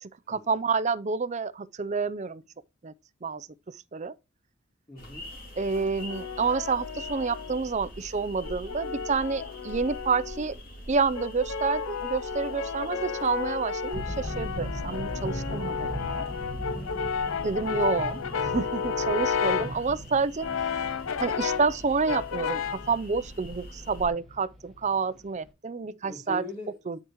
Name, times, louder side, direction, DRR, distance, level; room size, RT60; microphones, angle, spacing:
voice 1, 0.0-2.4 2.8-2.9 3.2-3.5 3.9-4.1 5.6-10.6 10.9-16.2 17.4-20.5 21.2-26.4 26.9-27.0, right 4 dB, 35° right, 0.5 m, -29 dB
voice 2, 4.9-5.3 16.7-17.2 25.1-25.3 25.8-26.8, left 2 dB, 20° left, 2.6 m, -42 dB
sound 1, 5.0-24.1, equal, 45° left, 2.8 m, -45 dB
Brass instrument, 5.7-7.7 8.4-10.5 11.1-19.8 20.4-21.8 22.1-22.9, left 6 dB, 75° left, 0.5 m, -32 dB
sound 2, 13.9-25.4, equal, ahead, 2.2 m, -39 dB
10.5 x 4.9 x 3.0 m
head